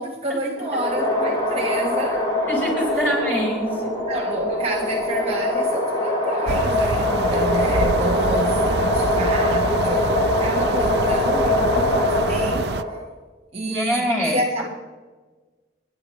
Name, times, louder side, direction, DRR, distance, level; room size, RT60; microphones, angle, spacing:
voice 1, 0.0-2.3 2.9-3.0 4.1-12.7 13.5-14.7, right 1 dB, 35° right, 1.1 m, -29 dB
sound 1, 0.6-13.0, left 1 dB, 25° left, 3.5 m, -22 dB
voice 2, 2.5-3.9 13.6-14.4, equal, 10° left, 4.5 m, -24 dB
sound 2, 6.5-12.8, right 4 dB, 65° right, 0.5 m, -27 dB
30.0 x 10.0 x 3.1 m
head